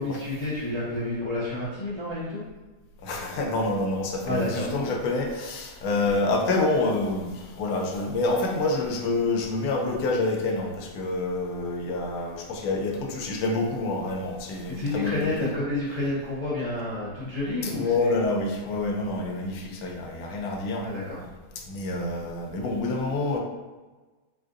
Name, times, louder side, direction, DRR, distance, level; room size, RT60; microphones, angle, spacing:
voice 1, 0.0-2.4 4.2-5.0 6.0-6.1 14.7-18.2 20.8-21.2, left 2 dB, 25° left, -11 dB, 0.6 m, -30 dB
voice 2, 3.0-15.5 17.6-20.9 21.7-23.4, left 2 dB, 75° left, 2 dB, 1.1 m, -27 dB
3.6 x 2.5 x 2.5 m, 1.3 s
omnidirectional pair, 1.6 m